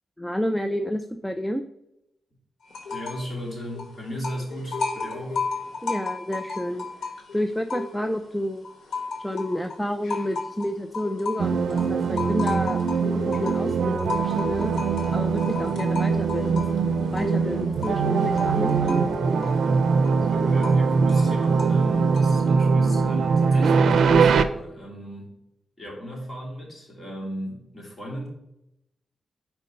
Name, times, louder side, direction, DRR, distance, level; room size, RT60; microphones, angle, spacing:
voice 1, 0.2-1.6 5.8-8.7 9.2-14.7 15.1-16.6 17.0-19.0, equal, 5° left, 8 dB, 0.4 m, -30 dB
sound 1, 2.7-3.3 3.6-8.3 8.6-22.5, left 3 dB, 90° left, 1.4 m, -34 dB
voice 2, 2.9-5.4 15.6-15.7 20.3-25.4 25.8-28.3, equal, 25° left, -3 dB, 2.7 m, -36 dB
sound 2, 11.4-24.4, right 5 dB, 80° right, 0.5 m, -22 dB
5.2 x 4.5 x 5.4 m, 0.84 s
wide cardioid pair, 115°, 0 cm